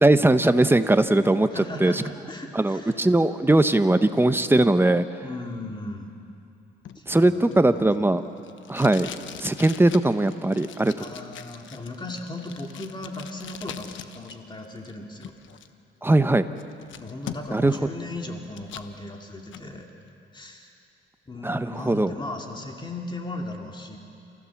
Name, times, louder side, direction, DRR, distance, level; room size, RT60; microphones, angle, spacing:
voice 1, 0.0-1.5 1.8-2.0 2.5-5.0 7.1-8.2 8.7-9.1 9.4-10.9 16.0-16.5 17.5-17.7 21.4-22.1, right 2 dB, 10° right, 10 dB, 0.9 m, -20 dB
voice 2, 1.5-2.9 5.2-6.1 7.0-7.9 9.4-9.5 10.8-15.3 17.0-19.9 20.3-20.7 21.3-24.0, left 2 dB, 25° left, 1 dB, 2.5 m, -37 dB
Packing tape duct tape, 6.8-14.4 14.6-15.7 16.1-16.2 16.6-17.7 18.1-18.9 19.3-19.7, left 9 dB, 75° left, 1.0 m, -42 dB
28.5 x 15.5 x 7.2 m, 2.5 s
cardioid pair, 90°, 20 cm